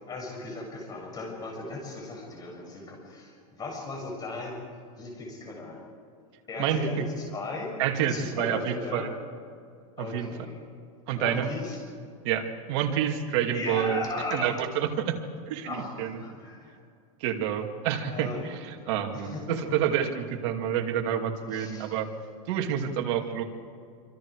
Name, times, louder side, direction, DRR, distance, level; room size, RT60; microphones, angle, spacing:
voice 1, 0.0-4.6 5.0-5.8 6.5-7.7 8.0-9.1 10.0-10.6 11.1-11.8 13.5-14.5 15.6-16.7 18.1-19.6 21.5-22.0, left 3 dB, 20° left, 0 dB, 7.4 m, -37 dB
voice 2, 6.6-7.0 7.8-9.1 10.0-10.5 11.1-11.5 12.2-14.0 14.3-15.1 15.5-16.1 17.2-22.1 22.5-23.4, right 9 dB, 55° right, 3 dB, 2.6 m, -28 dB
26.5 x 26.0 x 4.9 m, 2.3 s
supercardioid pair, 145°, 19 cm